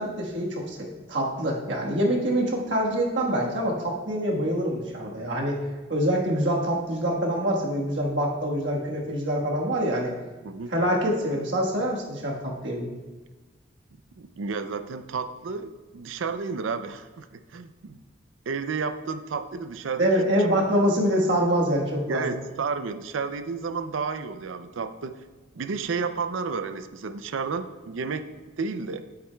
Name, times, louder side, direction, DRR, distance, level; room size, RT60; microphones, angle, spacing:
voice 1, 0.0-5.6 5.9-10.1 10.7-12.9 20.0-22.4, equal, 65° right, -2 dB, 1.4 m, -25 dB
voice 2, 14.2-18.0 18.5-20.1 22.1-25.2 25.5-28.2 28.6-29.1, right 5 dB, 80° right, 10 dB, 0.5 m, -31 dB
10.5 x 8.2 x 2.3 m, 1.3 s
head